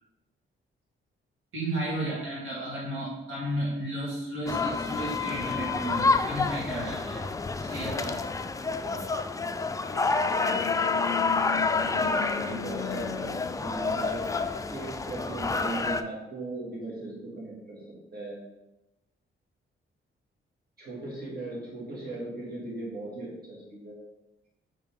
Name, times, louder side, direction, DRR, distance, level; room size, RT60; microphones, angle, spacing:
voice 1, 1.5-7.2 7.7-8.4, right 1 dB, 75° right, -6 dB, 2.1 m, -33 dB
sound 1, 4.5-16.0, left 4 dB, 15° left, 0.3 m, -29 dB
voice 2, 8.8-9.2 10.4-10.8 11.8-13.3 13.6-14.2 14.7-17.8 18.1-18.4 20.8-24.0, right 2 dB, 45° right, -5 dB, 2.3 m, -38 dB
sound 2, 9.8-15.0, left 10 dB, 90° left, 0.4 m, -38 dB
5.4 x 5.2 x 3.7 m, 0.95 s
cardioid pair, 95°, 21 cm